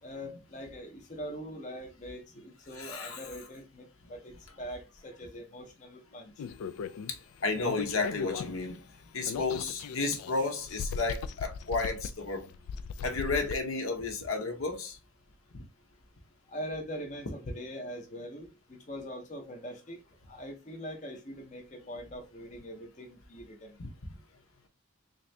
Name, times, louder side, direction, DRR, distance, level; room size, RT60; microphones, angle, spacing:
voice 1, 0.0-6.5 16.5-20.0 20.3-23.8, equal, 35° left, 0.7 m, -42 dB
voice 2, 2.7-3.2 7.1-8.8 9.1-12.4 13.0-15.0 15.5-15.6 23.8-23.9, left 3 dB, 75° left, 0.8 m, -32 dB
sound 1, 6.4-7.1 7.6-8.8 9.2-10.3 10.6-13.6, left 6 dB, 90° left, 0.3 m, -38 dB
3.6 x 2.6 x 3.2 m
head